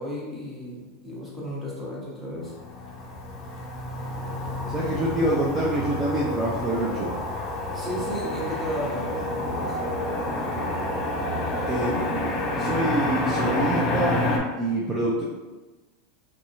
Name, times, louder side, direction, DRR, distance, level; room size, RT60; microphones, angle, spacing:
voice 1, 0.0-2.5 7.7-9.8 10.4-10.5, equal, 5° right, -7 dB, 1.1 m, -34 dB
Motor vehicle (road), 2.5-14.4, left 1 dB, 40° left, 0.5 m, -28 dB
voice 2, 4.7-7.1 11.7-14.2 14.6-15.2, right 1 dB, 20° right, -5 dB, 0.5 m, -26 dB
2.7 x 2.3 x 2.7 m, 1.2 s
hypercardioid pair, 100°, 0 cm